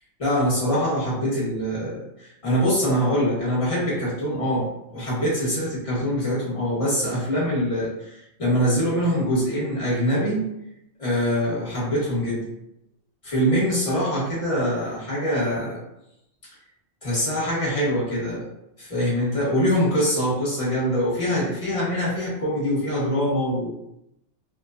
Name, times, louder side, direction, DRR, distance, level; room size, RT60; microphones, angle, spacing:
voice 1, 0.2-10.4 11.0-12.4 13.2-15.8 17.0-18.5 18.8-23.7, equal, 30° left, -8 dB, 1.1 m, -24 dB
3.1 x 2.1 x 2.4 m, 0.82 s
omnidirectional pair, 1.2 m